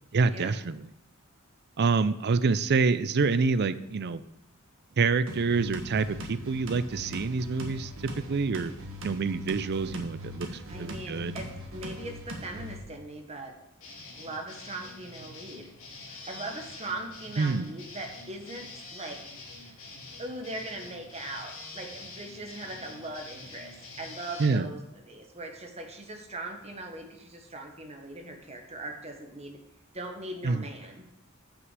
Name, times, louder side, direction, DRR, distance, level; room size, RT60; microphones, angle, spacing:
voice 1, 0.1-0.9 1.8-4.2 5.0-7.9 8.3-8.7 9.0-11.3 17.4-17.7 24.4-24.7 30.4-30.7, right 4 dB, 50° right, 14 dB, 0.5 m, -27 dB
sound 1, 5.3-12.8, equal, 65° right, 1.7 m, -40 dB
voice 2, 10.7-11.5 11.7-13.5 14.2-15.7 16.0-19.2 20.2-24.8 25.1-29.6 29.9-31.0, right 2 dB, 30° right, 4 dB, 1.2 m, -40 dB
sound 2, 13.8-24.5, left 3 dB, 75° left, 2.2 m, -46 dB
6.4 x 6.0 x 7.4 m, 0.80 s
head